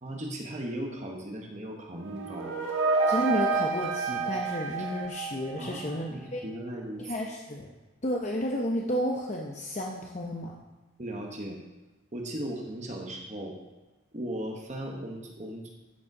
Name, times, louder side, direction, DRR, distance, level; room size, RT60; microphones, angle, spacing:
voice 1, 0.0-2.6 5.6-7.1 11.0-11.6 12.1-13.6 14.1-15.7, right 1 dB, 35° right, 0 dB, 1.1 m, -37 dB
sound 1, 2.0-5.9, right 4 dB, 75° right, 1.4 m, -29 dB
voice 2, 3.1-6.4 7.0-7.7 8.0-10.5, equal, 35° left, 0 dB, 0.7 m, -32 dB
12.5 x 5.3 x 4.8 m, 1.1 s
head